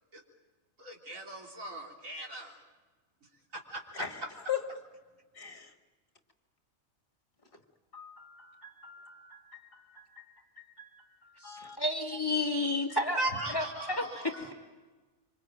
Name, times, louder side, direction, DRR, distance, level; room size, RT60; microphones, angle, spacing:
voice 1, 0.8-2.6 3.5-4.0 13.2-14.5, right 2 dB, 80° right, 3.8 m, -38 dB
voice 2, 5.4-5.7 7.9-10.2 10.8-11.8 14.3-14.5, left 9 dB, 45° left, 2.2 m, -41 dB
voice 3, 11.4-13.2 13.5-14.2, left 2 dB, 15° left, 2.3 m, -31 dB
26.0 x 25.5 x 9.0 m
omnidirectional pair, 1.4 m